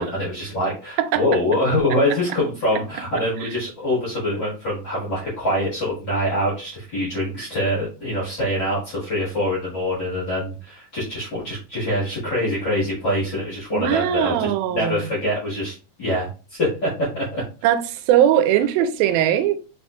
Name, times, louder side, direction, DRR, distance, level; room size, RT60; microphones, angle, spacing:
voice 1, 0.0-17.4, left 1 dB, 50° left, 1.4 m, -24 dB
voice 2, 13.7-15.1 17.6-19.6, right 11 dB, 90° right, 2.4 m, -20 dB
4.6 x 4.3 x 2.3 m
omnidirectional pair, 4.1 m